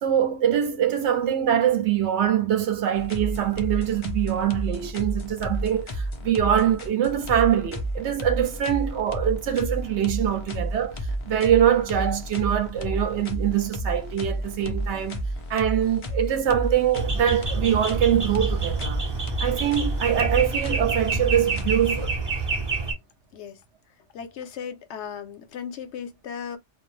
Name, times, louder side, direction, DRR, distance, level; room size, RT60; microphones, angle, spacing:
voice 1, 0.0-15.2 15.5-19.0 19.4-22.2, right 10 dB, 75° right, 0.8 m, -23 dB
sound 1, 2.9-22.4, right 1 dB, 50° left, 0.3 m, -31 dB
sound 2, 16.9-22.9, right 4 dB, 30° right, 0.5 m, -28 dB
voice 2, 24.1-26.6, left 7 dB, 75° left, 0.9 m, -36 dB
2.2 x 2.0 x 2.9 m
omnidirectional pair, 1.2 m